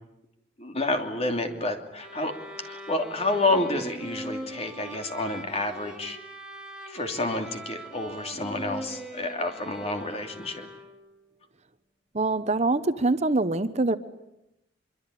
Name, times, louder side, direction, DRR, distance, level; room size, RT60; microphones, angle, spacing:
voice 1, 0.6-2.3 2.6-6.2 6.9-10.7, left 2 dB, 35° left, 5 dB, 2.9 m, -29 dB
sound 1, 2.0-11.2, right 1 dB, 5° right, 3.4 m, -41 dB
voice 2, 12.1-14.0, right 2 dB, 35° right, 12 dB, 0.9 m, -24 dB
24.5 x 23.5 x 9.9 m, 0.90 s
head